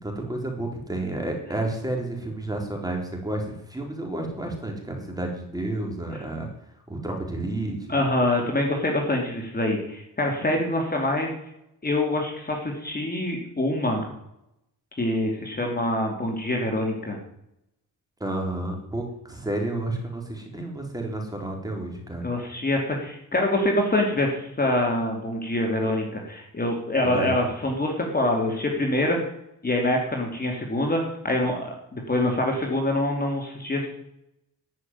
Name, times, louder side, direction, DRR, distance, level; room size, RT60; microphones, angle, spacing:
voice 1, 0.0-6.5 6.9-7.9 18.2-22.3 27.0-27.3, right 2 dB, 10° right, 1 dB, 3.8 m, -31 dB
voice 2, 7.9-11.3 11.8-14.0 15.0-17.2 22.2-29.2 29.6-33.9, left 1 dB, 25° left, 1 dB, 2.7 m, -25 dB
13.0 x 6.5 x 9.5 m, 0.79 s
cardioid pair, 110°, 39 cm